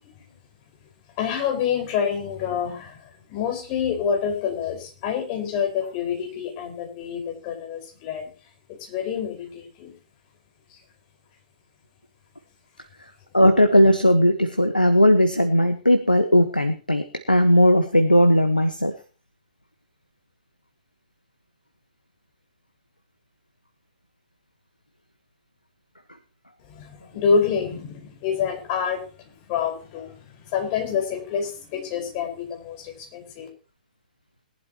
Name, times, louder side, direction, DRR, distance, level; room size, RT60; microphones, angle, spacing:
voice 1, 1.2-8.3 8.8-9.9 10.7-10.8 26.7-33.5, left 6 dB, 35° left, 2 dB, 5.2 m, -27 dB
voice 2, 13.3-18.9, equal, 90° left, 8 dB, 1.3 m, -17 dB
21.5 x 11.5 x 3.0 m, 0.35 s
figure-of-eight pair, 115°, 5 cm